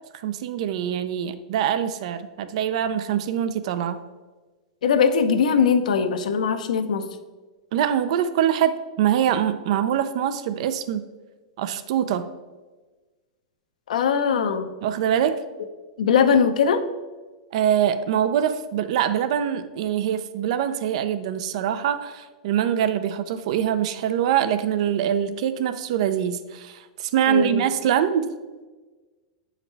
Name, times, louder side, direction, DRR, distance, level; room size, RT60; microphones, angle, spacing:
voice 1, 0.1-4.0 7.7-11.1 11.6-12.3 14.8-15.4 17.5-28.3, right 9 dB, 60° right, 12 dB, 0.5 m, -24 dB
voice 2, 4.8-7.1 13.9-14.7 16.0-16.8 27.3-27.6, left 6 dB, 90° left, 8 dB, 0.7 m, -20 dB
8.2 x 4.8 x 3.3 m, 1.3 s
supercardioid pair, 150°, 4 cm